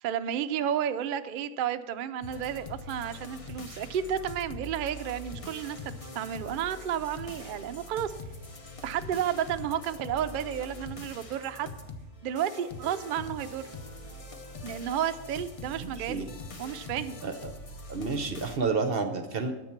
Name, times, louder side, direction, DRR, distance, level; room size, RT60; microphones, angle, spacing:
voice 1, 0.0-8.1 8.8-11.7 12.2-13.7 14.6-16.3 16.6-17.1, right 9 dB, 85° right, 10 dB, 0.4 m, -32 dB
sound 1, 2.2-18.6, left 2 dB, 30° left, 0.6 m, -43 dB
voice 2, 15.8-16.3 17.2-17.5 17.9-19.5, right 4 dB, 50° right, 8 dB, 0.8 m, -30 dB
10.5 x 8.0 x 5.8 m, 1.1 s
omnidirectional pair, 1.5 m